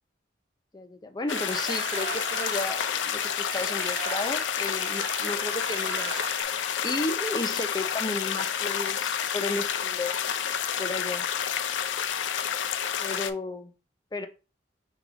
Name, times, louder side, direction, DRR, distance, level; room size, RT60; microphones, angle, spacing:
voice 1, 0.7-6.1 6.4-10.2 10.8-11.3 13.0-13.7 14.1-14.3, left 2 dB, 25° left, 0.5 m, -33 dB
sound 1, 1.3-13.3, left 8 dB, 90° left, 0.4 m, -29 dB
sound 2, 1.3-6.4, right 8 dB, 75° right, 0.3 m, -39 dB
4.8 x 2.4 x 3.8 m
head